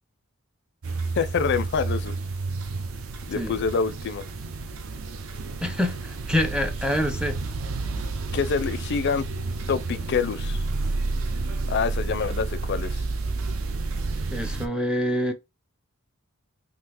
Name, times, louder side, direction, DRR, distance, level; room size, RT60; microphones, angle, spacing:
sound 1, 0.8-14.7, right 3 dB, 75° right, 0.5 m, -30 dB
voice 1, 1.1-2.1 3.3-4.3 8.3-9.2 9.7-10.7 11.7-13.0, left 5 dB, 55° left, 0.4 m, -26 dB
voice 2, 5.6-7.4 14.3-15.3, left 1 dB, 5° right, 0.5 m, -26 dB
3.7 x 2.8 x 2.9 m
head